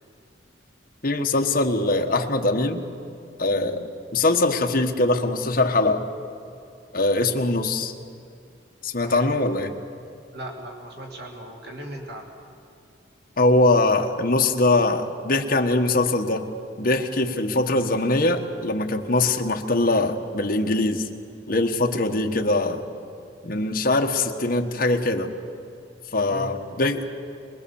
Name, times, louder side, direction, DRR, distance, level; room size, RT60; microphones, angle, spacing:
voice 1, 1.0-2.9 3.4-6.0 6.9-7.9 8.8-9.7 13.4-16.5 16.8-21.0 21.5-22.8 23.4-25.3 26.1-27.0, left 2 dB, 55° left, 2 dB, 1.4 m, -22 dB
voice 2, 10.3-12.3 26.3-26.5, right 1 dB, 65° right, 1 dB, 2.7 m, -37 dB
23.5 x 21.0 x 7.1 m, 2.4 s
head